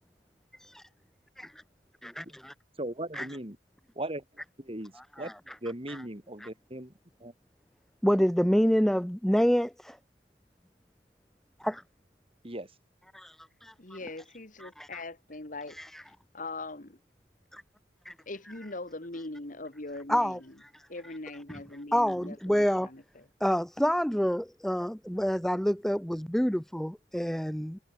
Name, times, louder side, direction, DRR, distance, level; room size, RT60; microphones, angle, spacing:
voice 1, 2.0-2.5 3.1-3.3 5.2-5.5 5.9-6.0 6.4-6.5 8.0-10.0 11.6-11.8 13.1-13.7 14.6-15.0 15.7-16.0 17.5-17.6 18.1-18.2 20.1-20.8 21.5-21.6 21.9-22.9 23.4-27.8, equal, ahead, 0.7 m, -28 dB
voice 2, 2.8-3.6 4.0-4.2 4.6-5.3 5.6-6.9 7.2-7.3 12.4-12.7, right 1 dB, 30° right, 3.9 m, -37 dB
voice 3, 13.8-15.8 16.3-17.0 18.3-20.5 20.9-23.2, left 2 dB, 45° left, 2.1 m, -41 dB
head